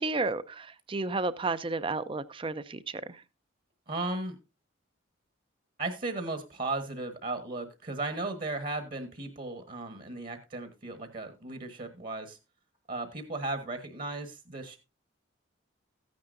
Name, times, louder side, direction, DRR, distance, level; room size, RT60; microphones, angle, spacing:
voice 1, 0.0-3.2, right 3 dB, 25° right, 0.5 m, -32 dB
voice 2, 3.9-4.4 5.8-12.4 12.9-14.8, right 2 dB, 40° right, 1.2 m, -36 dB
14.5 x 9.5 x 2.6 m
head